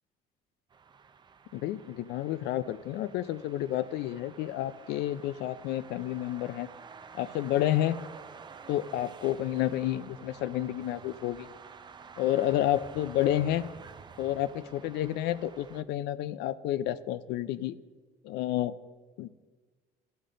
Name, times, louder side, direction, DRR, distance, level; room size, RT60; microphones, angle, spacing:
sound 1, 0.7-15.8, right 6 dB, 25° right, 0.4 m, -50 dB
voice 1, 1.5-6.7 7.2-8.0 8.7-11.5 12.2-13.7 14.2-17.8 18.2-18.7 19.2-19.3, left 13 dB, 85° left, 14 dB, 0.4 m, -30 dB
12.5 x 5.3 x 3.8 m, 1.4 s
cardioid pair, 110°, 17 cm